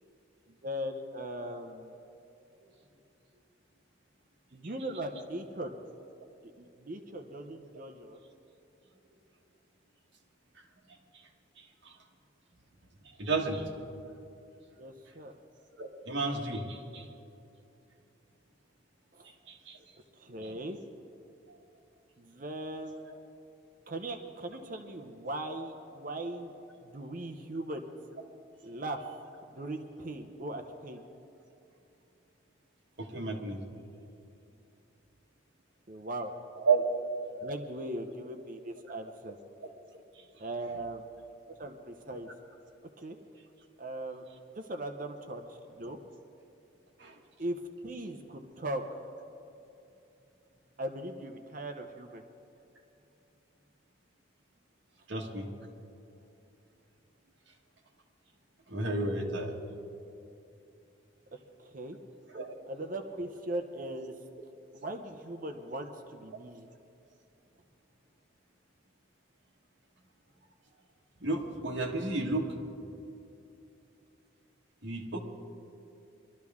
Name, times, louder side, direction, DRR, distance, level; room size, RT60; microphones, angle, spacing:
voice 1, 0.6-1.9 4.5-5.7 6.6-8.2 14.8-15.3 19.1-19.3 20.2-20.8 22.2-22.9 23.9-26.5 26.8-28.0 28.6-29.0 29.5-31.0 35.9-36.3 37.4-39.4 40.4-41.1 41.6-42.3 43.0-43.2 43.8-44.2 44.5-46.0 47.4-48.8 50.8-52.2 61.6-62.0 62.7-64.1 64.7-66.7, right 1 dB, 40° right, 5 dB, 0.7 m, -39 dB
voice 2, 11.6-11.9 13.2-13.7 15.8-17.0 19.5-19.8 21.5-21.6 33.0-33.7 36.6-36.9 47.0-47.2 55.1-55.5 58.7-59.6 62.3-62.5 71.2-72.5 74.8-75.2, right 3 dB, 60° right, 0 dB, 1.5 m, -32 dB
22.0 x 12.5 x 3.6 m, 2.7 s
head